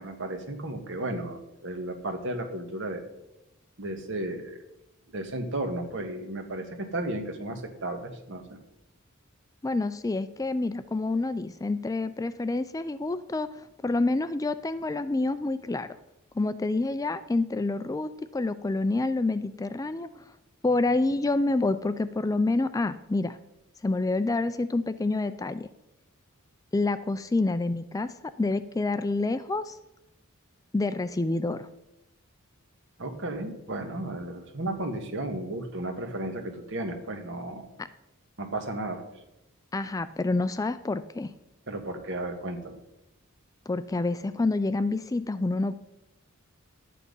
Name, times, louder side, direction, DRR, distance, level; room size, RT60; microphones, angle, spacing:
voice 1, 0.0-3.0 3.8-4.6 5.1-8.5 33.0-37.7 38.4-39.0 41.7-42.8, right 1 dB, 60° right, 5 dB, 1.7 m, -34 dB
voice 2, 9.6-13.5 13.8-15.9 16.4-20.1 20.6-23.4 23.8-25.7 26.7-28.1 28.4-29.8 30.7-31.7 37.8-37.9 39.7-41.3 43.7-45.8, left 2 dB, 15° left, 13 dB, 0.3 m, -27 dB
11.5 x 8.5 x 5.4 m, 0.92 s
head